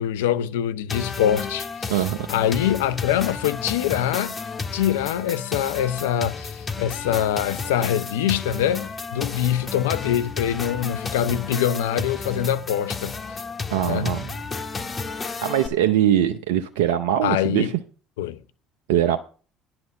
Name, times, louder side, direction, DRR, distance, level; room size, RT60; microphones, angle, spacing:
voice 1, 0.0-2.0 2.3-4.4 4.7-13.2 13.8-14.1 17.2-17.7 18.2-18.4, left 10 dB, 80° left, 0.6 m, -24 dB
sound 1, 0.9-15.7, left 4 dB, 30° left, 1.6 m, -32 dB
voice 2, 1.9-2.3 13.7-14.3 15.4-17.7 18.9-19.2, right 11 dB, 80° right, 0.6 m, -22 dB
10.5 x 6.0 x 6.5 m
hypercardioid pair, 65°, 0 cm